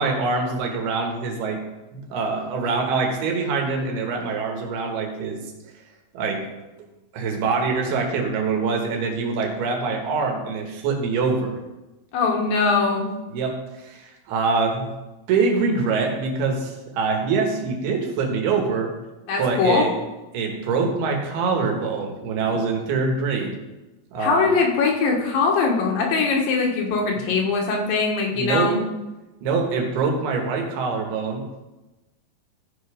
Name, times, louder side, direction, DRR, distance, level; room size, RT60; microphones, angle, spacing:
voice 1, 0.0-1.6 1.9-5.4 6.1-6.5 7.1-11.6 13.3-14.9 15.3-18.9 19.4-19.9 20.3-23.6 24.1-24.6 28.3-28.8 29.4-31.5, right 4 dB, 80° right, 2 dB, 3.3 m, -24 dB
voice 2, 12.1-13.1 19.3-19.9 24.2-28.8, left 4 dB, 70° left, 0 dB, 2.8 m, -21 dB
14.5 x 5.5 x 5.0 m, 1.1 s
omnidirectional pair, 4.5 m